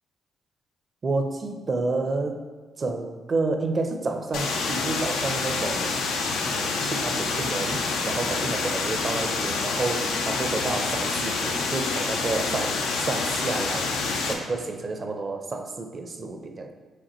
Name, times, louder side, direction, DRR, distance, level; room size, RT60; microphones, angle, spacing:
voice 1, 1.0-2.4 2.8-6.0 6.4-13.9 14.3-16.7, right 3 dB, 40° right, 5 dB, 0.5 m, -30 dB
sound 1, 4.3-14.3, left 4 dB, 90° left, 0.6 m, -27 dB
5.1 x 3.5 x 3.0 m, 1.5 s
cardioid pair, 90°, 0 cm